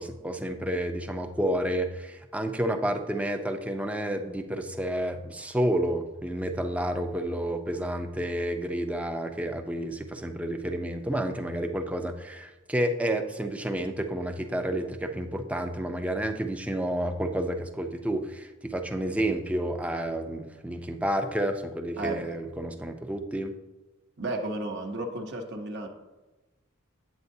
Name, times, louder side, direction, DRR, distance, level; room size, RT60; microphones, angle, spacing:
voice 1, 0.0-23.5, right 1 dB, 5° right, 5 dB, 0.5 m, -30 dB
voice 2, 22.0-22.3 24.2-25.9, right 2 dB, 55° right, 3 dB, 0.8 m, -33 dB
8.4 x 8.0 x 2.7 m, 1.1 s
head